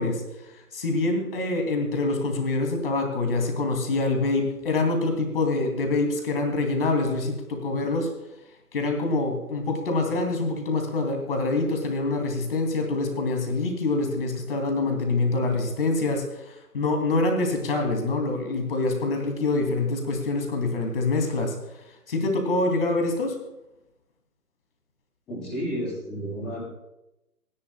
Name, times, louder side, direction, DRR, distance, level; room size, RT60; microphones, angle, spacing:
voice 1, 0.0-8.1 8.7-21.6 22.1-23.4, left 2 dB, 35° left, 3 dB, 2.6 m, -25 dB
voice 2, 25.3-26.6, equal, ahead, -10 dB, 0.7 m, -31 dB
26.0 x 10.5 x 2.2 m, 0.92 s
figure-of-eight pair, 140°, 46 cm